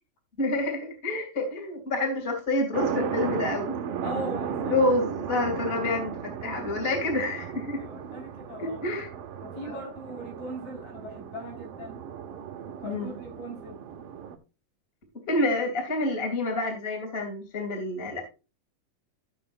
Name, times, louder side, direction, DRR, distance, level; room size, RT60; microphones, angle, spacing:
voice 1, 0.4-3.7 4.7-7.8 8.6-9.1 9.7-9.8 12.8-13.2 15.3-18.2, left 2 dB, 20° left, 4 dB, 2.5 m, -28 dB
sound 1, 2.7-14.4, right 7 dB, 65° right, 1.6 m, -35 dB
voice 2, 4.0-4.9 7.7-8.8 9.4-12.0 12.8-13.8, equal, 85° left, -1 dB, 6.7 m, -39 dB
14.5 x 7.0 x 2.6 m, 0.31 s
omnidirectional pair, 3.7 m